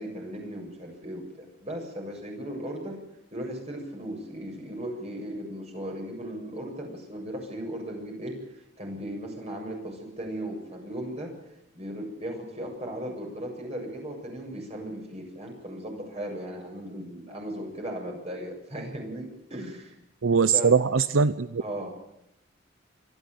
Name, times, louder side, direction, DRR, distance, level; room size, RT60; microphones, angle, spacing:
voice 1, 0.0-3.0 3.3-11.3 11.7-20.0 20.5-20.7 21.6-21.9, right 1 dB, 35° right, 1 dB, 7.5 m, -37 dB
voice 2, 20.2-21.6, right 5 dB, 90° right, 14 dB, 0.7 m, -21 dB
24.5 x 14.5 x 9.2 m, 0.82 s
head